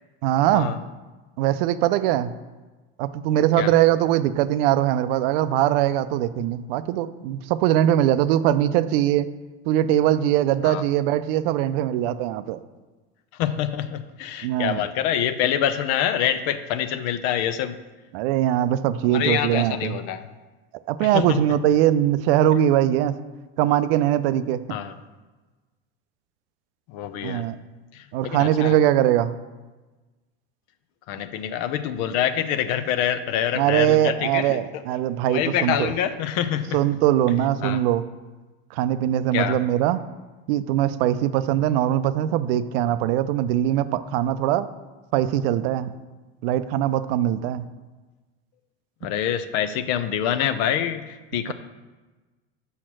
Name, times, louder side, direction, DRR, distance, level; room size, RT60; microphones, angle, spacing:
voice 1, 0.2-0.7 1.4-2.3 3.0-9.3 9.7-12.6 14.4-14.9 18.1-20.0 20.9-23.2 23.6-24.6 27.2-27.6 28.1-29.3 33.6-35.9 36.7-38.0 38.7-40.1 40.5-44.7 45.1-46.0 46.4-47.7, right 12 dB, 70° right, 13 dB, 0.5 m, -21 dB
voice 2, 13.4-17.8 19.0-20.2 21.0-21.4 24.7-24.9 26.9-27.5 27.9-28.8 31.1-34.6 35.3-36.8 37.6-37.8 39.3-39.6 49.0-51.5, left 10 dB, 60° left, 11 dB, 0.6 m, -26 dB
5.6 x 4.3 x 6.1 m, 1.2 s
hypercardioid pair, 95°, 31 cm